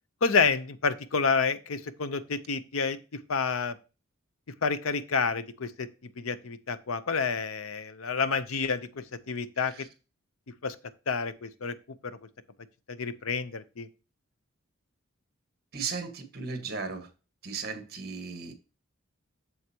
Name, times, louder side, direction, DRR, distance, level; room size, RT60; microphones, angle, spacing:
voice 1, 0.2-3.0 3.3-3.7 4.6-5.9 6.2-9.7 10.6-10.8 11.1-11.7 12.0-12.2 12.9-13.9, left 5 dB, 80° left, 0.7 m, -29 dB
voice 2, 15.7-17.1 17.4-18.5, right 5 dB, 45° right, 1.5 m, -36 dB
7.9 x 7.2 x 2.9 m
head